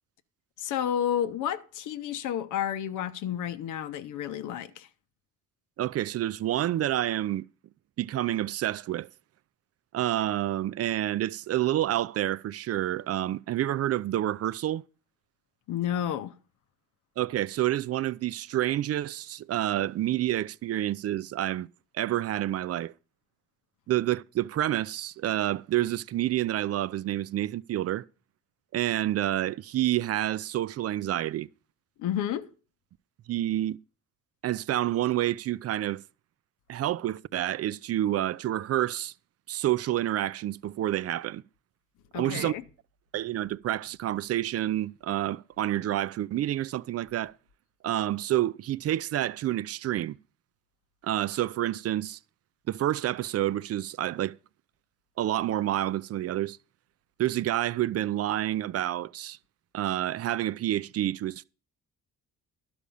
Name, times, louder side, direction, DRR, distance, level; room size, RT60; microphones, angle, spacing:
voice 1, 0.6-4.9 15.7-16.3 32.0-32.5 42.1-42.6, left 10 dB, 85° left, 0.8 m, -31 dB
voice 2, 5.8-7.5 8.0-9.1 9.9-14.8 17.2-21.7 21.9-22.9 23.9-28.0 28.7-31.5 33.3-33.8 34.4-36.0 36.7-39.1 39.5-41.4 42.1-42.5 43.1-47.3 47.8-50.2 51.0-52.2 52.7-54.4 55.2-56.6 57.2-59.4 59.7-61.4, right 13 dB, 55° right, 0.4 m, -28 dB
11.5 x 5.1 x 6.8 m
cardioid pair, 90°, 30 cm